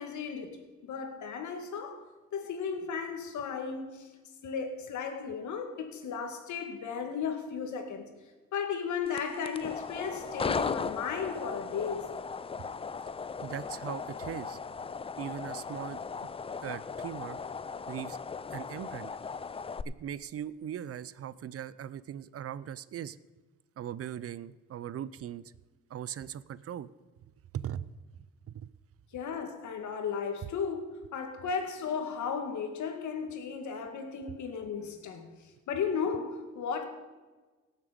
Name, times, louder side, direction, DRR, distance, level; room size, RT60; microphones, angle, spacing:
voice 1, 0.0-2.0 2.3-4.1 4.4-8.0 8.5-12.1 29.1-30.8 31.1-35.3 35.7-36.8, left 6 dB, 75° left, 2.1 m, -35 dB
sound 1, 9.1-19.8, left 5 dB, 20° left, 0.4 m, -37 dB
voice 2, 13.4-14.6 15.2-16.0 16.6-17.4 17.9-18.2 18.5-19.1 19.9-23.2 23.8-25.5 25.9-26.9 27.5-27.9 28.5-28.7, right 10 dB, 50° right, 0.6 m, -39 dB
17.5 x 7.4 x 5.1 m
cardioid pair, 90°, 30 cm